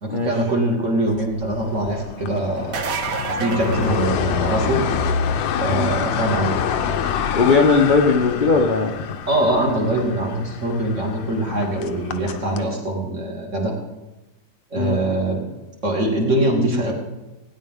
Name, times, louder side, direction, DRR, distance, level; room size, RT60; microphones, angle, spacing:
voice 1, 0.0-2.8 3.4-4.8 5.6-6.6 9.3-13.7 14.7-15.4 15.8-16.9, right 1 dB, 40° right, -1 dB, 2.3 m, -22 dB
sound 1, 1.1-12.6, left 7 dB, 75° left, 1.4 m, -26 dB
sound 2, 2.6-4.8 10.3-10.4 12.2-12.3, right 5 dB, 55° right, 1.2 m, -29 dB
voice 2, 7.3-8.9 14.8-15.0, left 4 dB, 40° left, 1 dB, 0.7 m, -18 dB
17.5 x 9.9 x 3.6 m, 1.1 s
omnidirectional pair, 2.1 m